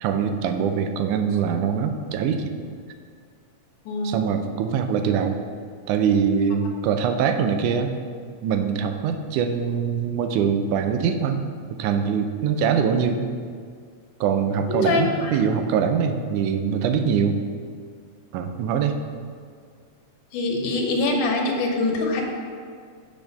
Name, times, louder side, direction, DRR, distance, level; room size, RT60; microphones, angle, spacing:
voice 1, 0.0-2.5 4.0-5.4 5.9-7.9 8.4-11.4 11.8-13.3 14.2-17.4 18.3-19.0, right 7 dB, 90° right, 6 dB, 2.1 m, -23 dB
voice 2, 3.9-4.3 14.7-15.3 20.3-22.2, left 2 dB, 90° left, 1 dB, 2.5 m, -24 dB
6.8 x 6.2 x 5.3 m, 2.1 s
omnidirectional pair, 3.5 m